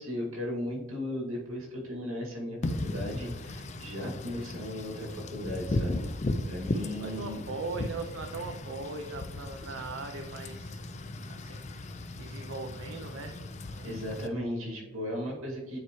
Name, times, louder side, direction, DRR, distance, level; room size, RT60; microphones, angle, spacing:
voice 1, 0.0-7.4 13.8-15.8, left 1 dB, 85° right, -2 dB, 2.1 m, -36 dB
Wind / Rain, 2.6-14.3, left 2 dB, 35° left, 0.4 m, -36 dB
voice 2, 7.0-10.8 11.3-13.4 13.7-14.0, right 3 dB, 65° right, 5 dB, 0.5 m, -40 dB
9.4 x 4.5 x 3.0 m, 1.2 s
head